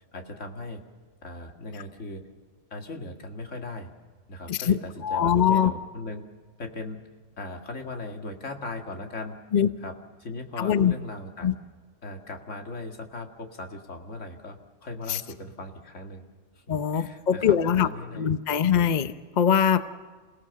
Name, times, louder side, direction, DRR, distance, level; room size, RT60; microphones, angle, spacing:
voice 1, 0.1-0.8 1.2-2.3 2.7-3.9 4.3-6.2 6.6-7.0 7.4-9.3 9.8-11.6 12.0-16.3 16.7-18.3, left 2 dB, 85° left, 4 dB, 2.4 m, -38 dB
voice 2, 5.0-5.7 9.5-9.7 10.6-10.9 11.4-11.5 15.1-15.2 16.7-17.9 18.1-19.8, left 8 dB, 40° left, 12 dB, 0.8 m, -22 dB
28.0 x 17.5 x 7.0 m, 1.4 s
omnidirectional pair, 1.2 m